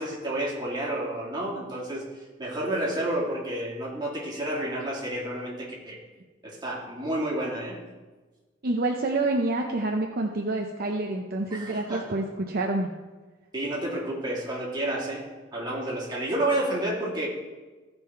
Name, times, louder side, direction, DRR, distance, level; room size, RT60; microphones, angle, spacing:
voice 1, 0.0-2.0 2.4-6.0 6.4-7.8 11.5-12.1 13.5-15.3 15.5-17.3, right 1 dB, 20° right, -4 dB, 2.6 m, -30 dB
voice 2, 8.6-12.9, right 2 dB, 50° right, 1 dB, 0.7 m, -27 dB
16.0 x 5.3 x 4.5 m, 1.3 s
head